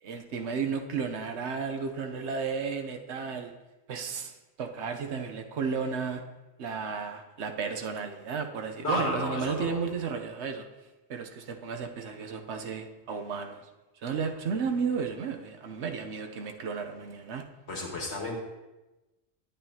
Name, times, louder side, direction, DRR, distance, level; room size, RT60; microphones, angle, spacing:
voice 1, 0.0-3.5 3.9-6.2 6.6-10.6 11.1-13.6 14.0-17.5, right 5 dB, 85° right, 5 dB, 1.1 m, -33 dB
voice 2, 8.8-9.8 17.7-18.4, left 1 dB, 80° left, -1 dB, 2.0 m, -32 dB
10.5 x 8.6 x 2.8 m, 1.1 s
omnidirectional pair, 1.1 m